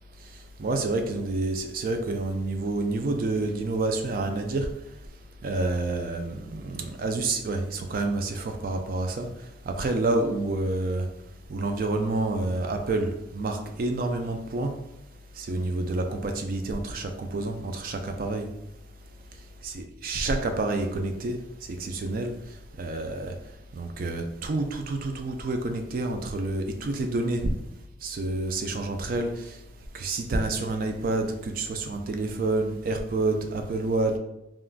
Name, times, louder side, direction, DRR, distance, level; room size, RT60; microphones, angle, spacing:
voice 1, 0.6-4.7 5.4-9.3 9.7-11.1 11.5-14.7 15.4-18.5 19.6-21.4 21.8-22.3 22.8-23.3 23.8-27.5 28.0-29.5 29.9-34.2, right 2 dB, 45° right, 5 dB, 0.3 m, -28 dB
3.5 x 2.4 x 2.2 m, 0.88 s
head